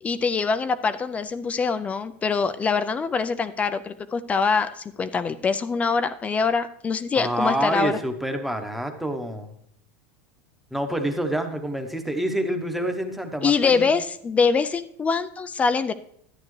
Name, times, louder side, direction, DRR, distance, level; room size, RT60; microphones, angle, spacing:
voice 1, 0.0-8.0 13.4-15.9, left 5 dB, 20° left, 13 dB, 0.4 m, -24 dB
voice 2, 7.1-9.5 10.7-13.9, right 1 dB, ahead, 5 dB, 0.9 m, -27 dB
11.5 x 9.4 x 3.2 m, 0.69 s
supercardioid pair, 140°, 7 cm